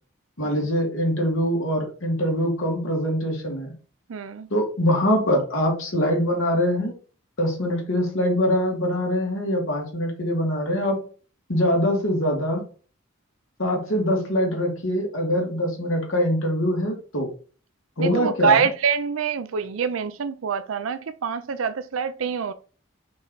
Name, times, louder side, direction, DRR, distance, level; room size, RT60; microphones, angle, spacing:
voice 1, 0.4-3.7 4.5-6.9 7.4-11.0 11.5-12.6 13.6-17.3 18.0-18.6, equal, 80° left, 2.4 m, -23 dB
voice 2, 4.1-4.5 18.0-22.5, right 6 dB, 90° right, 0.5 m, -25 dB
5.4 x 4.4 x 4.0 m
head